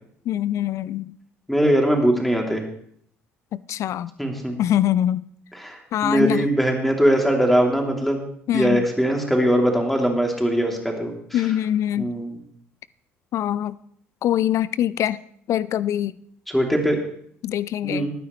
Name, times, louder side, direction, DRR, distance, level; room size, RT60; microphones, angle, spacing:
voice 1, 0.3-1.0 3.5-4.1 4.6-5.2 5.9-6.4 8.5-8.9 11.3-12.1 13.3-13.8 14.2-15.2 15.5-16.2 17.4-18.1, left 11 dB, 50° left, 0.4 m, -23 dB
voice 2, 1.5-2.6 4.2-4.6 5.5-8.2 8.5-11.4 12.0-12.4 16.5-17.0 17.8-18.1, equal, ahead, 3.0 m, -21 dB
20.0 x 9.4 x 3.2 m
figure-of-eight pair, 55°, 7 cm